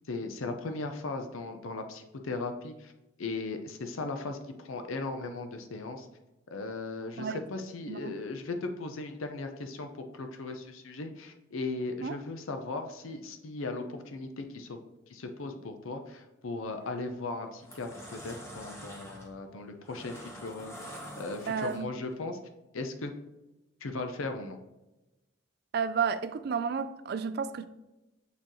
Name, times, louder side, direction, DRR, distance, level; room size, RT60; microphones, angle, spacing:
voice 1, 0.1-2.9 3.2-6.1 6.5-14.8 15.1-22.4 22.7-23.1 23.8-24.6, left 3 dB, 90° left, 0.6 m, -37 dB
sound 1, 16.7-17.0 17.4-22.1, equal, 15° left, 1.0 m, -46 dB
voice 2, 21.5-21.9 25.7-27.7, right 6 dB, 50° right, 0.3 m, -31 dB
7.0 x 4.5 x 3.0 m
head